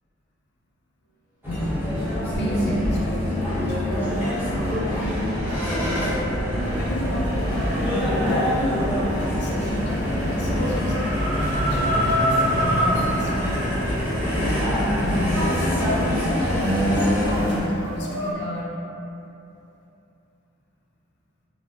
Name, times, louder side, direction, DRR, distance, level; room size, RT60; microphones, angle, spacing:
sound 1, 1.4-17.6, equal, 10° right, 0.6 m, -24 dB
voice 1, 1.5-4.0 4.4-4.8 5.1-5.3 5.7-6.1 6.7-7.9 8.8-13.7 14.2-18.7, equal, 55° left, -4 dB, 0.5 m, -33 dB
sound 2, 3.8-15.4, equal, 75° right, 1.4 m, -34 dB
Chicken rooster, 6.6-18.3, equal, 55° right, 0.4 m, -30 dB
3.1 x 2.2 x 2.4 m, 2.8 s
head